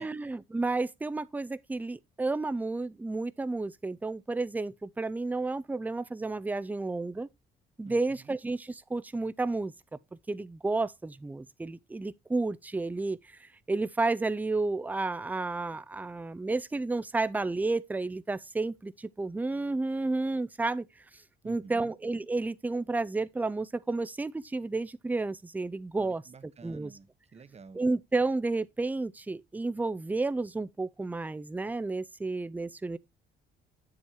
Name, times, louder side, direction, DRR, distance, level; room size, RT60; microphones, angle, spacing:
voice 1, 0.0-7.3 7.8-9.7 10.3-20.9 21.4-26.2 26.6-26.9 27.7-33.0, right 3 dB, 10° right, 0.4 m, -31 dB
voice 2, 7.8-8.4 21.4-21.9 26.0-27.8, right 5 dB, 35° right, 0.9 m, -50 dB
8.6 x 7.2 x 2.9 m
cardioid pair, 90°, 20 cm